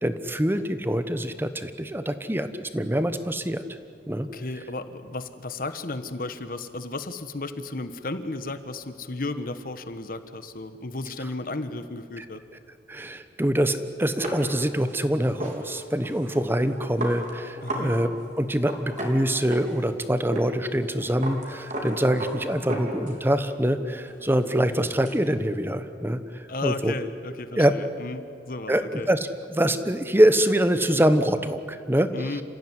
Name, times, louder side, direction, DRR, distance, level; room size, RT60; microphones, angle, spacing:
voice 1, 0.0-3.6 4.1-4.3 12.2-12.3 12.9-18.1 18.4-26.9 27.6-27.7 28.7-32.1, right 1 dB, 15° right, 11 dB, 1.0 m, -24 dB
voice 2, 4.2-12.4 17.6-17.9 26.5-29.1 32.1-32.4, left 2 dB, 55° left, 11 dB, 1.3 m, -34 dB
sound 1, 14.2-17.9 18.2-18.3 18.6-19.9 20.3-20.5 20.8-23.4 23.8-25.2, right 1 dB, 45° right, 4.1 m, -35 dB
28.0 x 15.5 x 9.8 m, 2.5 s
head